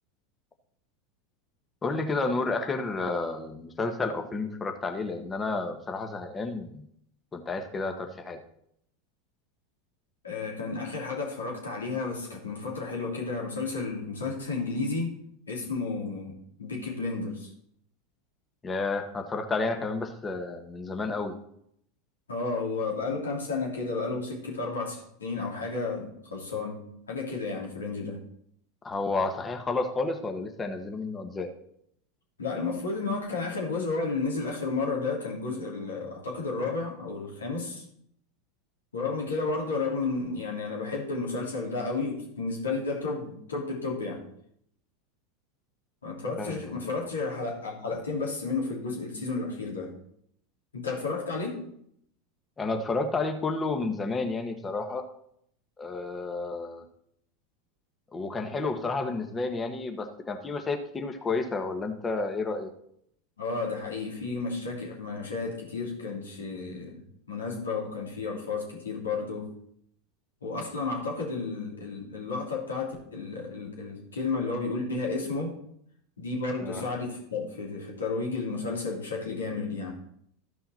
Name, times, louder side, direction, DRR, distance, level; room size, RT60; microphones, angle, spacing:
voice 1, 1.8-6.9 7.3-8.4 18.6-21.4 28.8-31.5 46.4-46.9 52.6-55.0 55.8-56.8 58.1-62.7 76.6-76.8, left 3 dB, 20° left, 5 dB, 1.5 m, -31 dB
voice 2, 10.2-15.1 15.5-17.5 22.3-28.2 32.4-37.8 38.9-44.2 46.0-49.9 50.7-51.6 63.4-69.5 70.4-75.5 76.2-80.0, left 3 dB, 85° left, -2 dB, 3.1 m, -32 dB
13.5 x 5.6 x 4.4 m, 0.70 s
hypercardioid pair, 90°, 0 cm